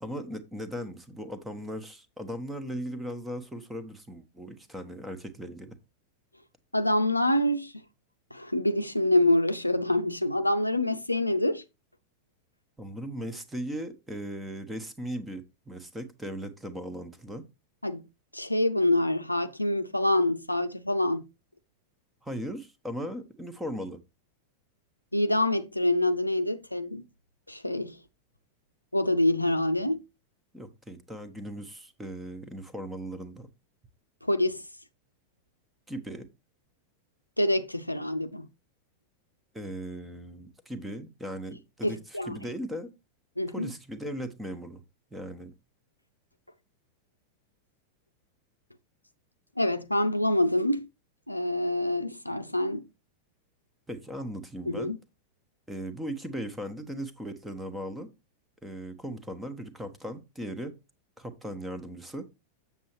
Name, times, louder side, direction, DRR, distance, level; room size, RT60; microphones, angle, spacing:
voice 1, 0.0-5.8 12.8-17.4 22.2-24.0 30.5-33.5 35.9-36.3 39.5-42.9 43.5-44.8 45.1-45.5 53.9-54.9 55.7-58.1 58.6-60.8 61.2-62.3, equal, 5° right, 1.0 m, -38 dB
voice 2, 6.7-7.7 8.3-11.6 17.8-18.0 18.3-21.3 25.1-27.0 27.5-28.0 28.9-30.0 34.2-34.6 37.4-38.5 41.8-42.4 43.4-43.7 49.6-50.9 51.3-52.8 54.7-55.0, left 1 dB, 85° left, 0.5 m, -26 dB
7.4 x 7.0 x 3.0 m
figure-of-eight pair, 90°, 0 cm